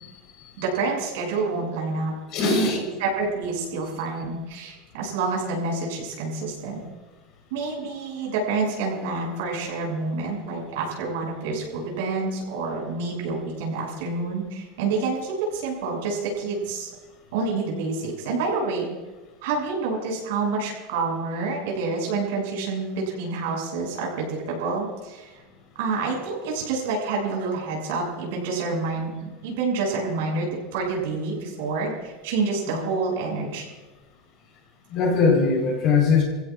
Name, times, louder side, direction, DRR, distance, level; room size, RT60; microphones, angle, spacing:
voice 1, 0.6-6.8 7.5-16.9 17.3-18.9 19.4-25.3 25.8-33.7, right 4 dB, 75° right, -1 dB, 6.8 m, -28 dB
voice 2, 2.3-2.8 34.9-36.2, left 5 dB, 40° left, 1 dB, 4.2 m, -20 dB
28.5 x 16.0 x 2.5 m, 1.2 s
supercardioid pair, 175°, 0 cm